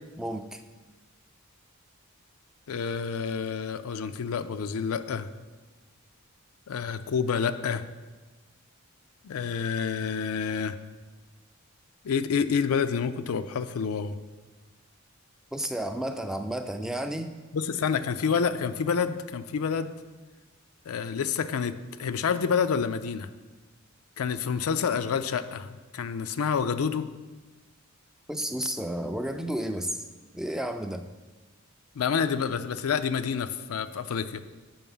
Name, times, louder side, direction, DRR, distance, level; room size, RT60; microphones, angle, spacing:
voice 1, 0.2-0.6 15.5-17.3 28.3-30.0 30.3-31.1, right 1 dB, ahead, 7 dB, 0.3 m, -32 dB
voice 2, 2.7-5.3 6.7-7.8 9.2-10.8 12.0-14.1 17.5-20.0 20.9-23.3 24.2-27.1 32.0-34.4, left 6 dB, 85° left, 11 dB, 0.4 m, -28 dB
7.1 x 5.5 x 5.4 m, 1.3 s
head